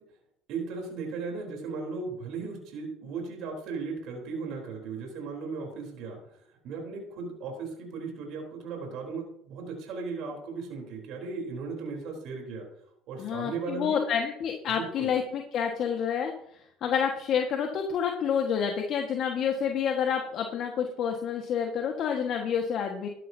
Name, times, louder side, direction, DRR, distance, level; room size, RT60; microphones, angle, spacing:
voice 1, 0.5-12.7 13.1-14.0 14.7-15.1, right 4 dB, 65° right, 0 dB, 3.8 m, -37 dB
voice 2, 13.2-16.3 16.8-23.1, left 7 dB, 55° left, 2 dB, 1.6 m, -28 dB
13.5 x 10.5 x 2.8 m, 0.73 s
supercardioid pair, 90°, 0 cm